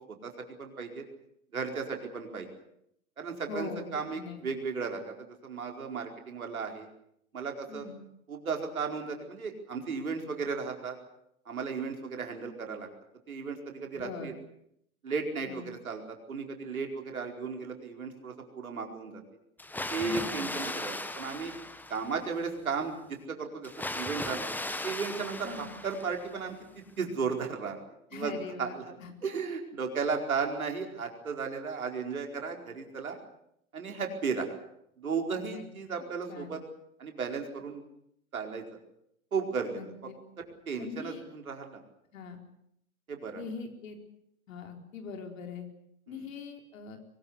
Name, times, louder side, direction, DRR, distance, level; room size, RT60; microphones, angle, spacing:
voice 1, 0.1-1.0 1.5-2.5 3.2-6.9 7.3-7.9 8.3-11.0 11.5-12.9 13.3-14.3 15.0-19.2 19.9-21.5 21.9-22.9 23.3-24.5 24.8-26.6 27.0-27.8 28.1-28.8 29.2-33.2 33.7-34.5 35.0-36.6 37.0-37.8 38.3-38.6 39.3-39.8 40.4-41.8 43.1-43.4, right 5 dB, 80° right, 3 dB, 4.8 m, -35 dB
voice 2, 3.5-4.4 7.7-8.0 13.9-14.3 15.4-15.7 20.0-20.5 25.4-25.7 28.1-29.1 35.3-35.6 36.3-36.6 39.7-40.2 40.8-41.2 42.1-42.4 43.4-44.0 44.5-45.7 46.1-47.0, left 4 dB, 65° left, 4 dB, 4.7 m, -42 dB
Water, 19.6-22.4 23.6-26.5, left 2 dB, 5° left, 1.3 m, -37 dB
23.0 x 20.5 x 8.2 m, 0.75 s
figure-of-eight pair, 100°, 42 cm